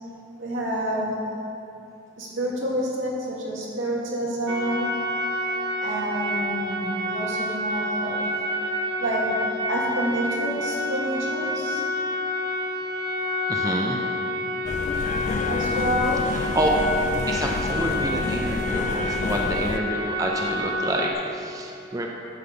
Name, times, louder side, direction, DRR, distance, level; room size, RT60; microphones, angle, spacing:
voice 1, 0.4-1.2 2.2-4.9 5.8-8.3 9.0-9.2 9.7-11.8 15.5-16.2, right 1 dB, 80° right, -4 dB, 2.2 m, -28 dB
sound 1, 4.5-21.1, left 1 dB, 55° right, 1.0 m, -28 dB
voice 2, 13.5-14.0 16.3-16.8 17.3-22.1, right 1 dB, 20° right, 0 dB, 0.6 m, -27 dB
sound 2, 14.7-19.8, left 3 dB, 35° left, 0.3 m, -29 dB
9.9 x 5.5 x 6.7 m, 2.7 s
head